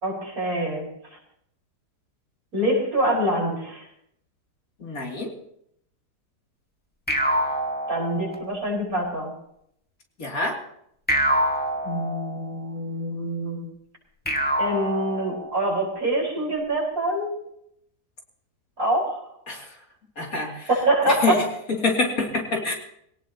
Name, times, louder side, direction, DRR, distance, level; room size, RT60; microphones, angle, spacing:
voice 1, 0.0-0.9 2.5-3.8 7.9-9.3 11.8-13.7 14.6-17.4 18.8-19.2 20.7-21.4 22.5-22.6, right 1 dB, 55° right, -3 dB, 5.6 m, -25 dB
voice 2, 4.8-5.3 10.2-10.6 19.5-19.6 20.2-20.7 21.1-21.4 21.7-22.7, left 3 dB, 55° left, 0 dB, 3.2 m, -26 dB
sound 1, 7.1-8.7 11.1-12.7 14.2-15.8, right 1 dB, 5° left, 1.5 m, -26 dB
22.5 x 18.0 x 2.9 m, 0.72 s
omnidirectional pair, 1.8 m